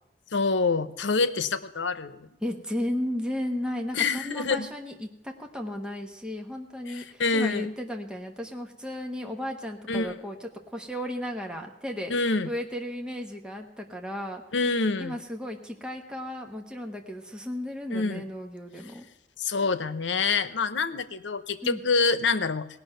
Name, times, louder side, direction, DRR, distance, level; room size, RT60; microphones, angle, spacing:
voice 1, 0.3-2.3 3.9-4.7 6.9-7.7 9.9-10.2 12.1-12.5 14.5-15.1 17.9-18.3 19.4-22.7, left 4 dB, 90° left, 13 dB, 0.8 m, -26 dB
voice 2, 2.4-12.1 12.4-14.4 15.0-19.1 21.6-21.8, left 1 dB, 5° right, 2 dB, 1.2 m, -34 dB
18.0 x 6.2 x 8.9 m, 0.87 s
head